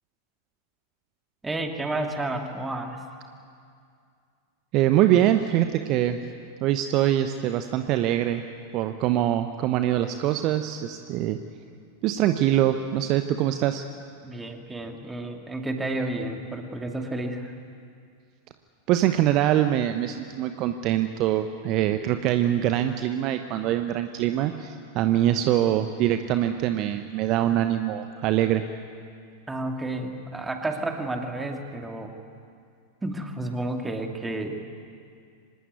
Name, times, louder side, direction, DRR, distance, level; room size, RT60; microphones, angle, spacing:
voice 1, 1.4-3.0 14.2-17.5 29.5-32.1 33.0-34.6, right 2 dB, 10° right, 3 dB, 2.6 m, -31 dB
voice 2, 4.7-6.2 6.6-8.4 8.7-11.4 12.0-13.8 18.9-28.6, right 12 dB, 40° right, 8 dB, 1.0 m, -23 dB
25.0 x 19.0 x 9.7 m, 2.3 s
figure-of-eight pair, 90°, 0 cm